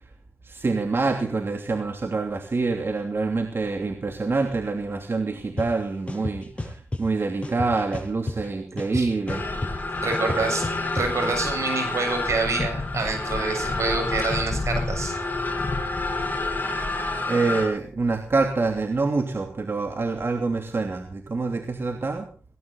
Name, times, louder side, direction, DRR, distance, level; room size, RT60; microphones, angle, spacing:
voice 1, 0.4-9.4 17.3-22.3, right 3 dB, 55° right, 4 dB, 2.9 m, -26 dB
sound 1, 5.6-5.7 6.1-7.0 7.4-8.5 8.8-11.1, left 2 dB, 25° left, 7.3 m, -31 dB
sound 2, 9.3-17.7, left 2 dB, 40° left, 6.1 m, -28 dB
voice 2, 10.0-10.6 10.9-15.2, right 4 dB, 80° right, 4 dB, 7.3 m, -27 dB
18.5 x 18.0 x 4.1 m, 0.40 s
wide cardioid pair, 75°, 5 cm